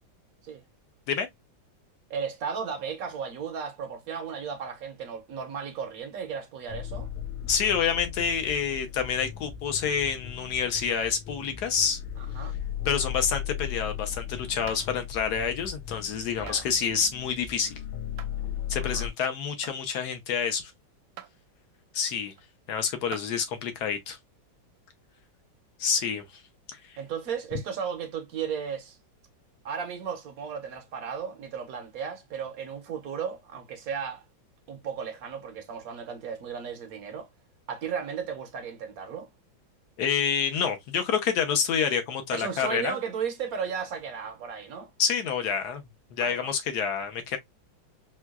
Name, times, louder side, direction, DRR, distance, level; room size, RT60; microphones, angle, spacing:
voice 1, 2.1-7.1 12.2-12.5 16.4-16.7 18.7-19.1 27.0-29.0 29.6-34.2 34.7-37.3 37.7-39.3 42.3-44.9 46.2-46.5, right 6 dB, 65° right, 0.9 m, -35 dB
sound 1, 6.7-19.1, left 10 dB, 90° left, 1.4 m, -37 dB
voice 2, 7.5-12.0 12.8-17.7 18.7-20.7 21.9-22.3 22.7-24.2 25.8-26.2 27.5-27.6 40.0-43.0 45.0-45.8 46.1-47.4, left 7 dB, 65° left, 1.1 m, -28 dB
sound 2, 14.7-14.9 16.5-16.6 18.2-18.4 19.6-19.9 21.2-21.3 22.4-22.5 23.1-23.3 24.8-24.9, right 11 dB, 80° right, 1.3 m, -43 dB
4.5 x 2.3 x 2.3 m
omnidirectional pair, 2.1 m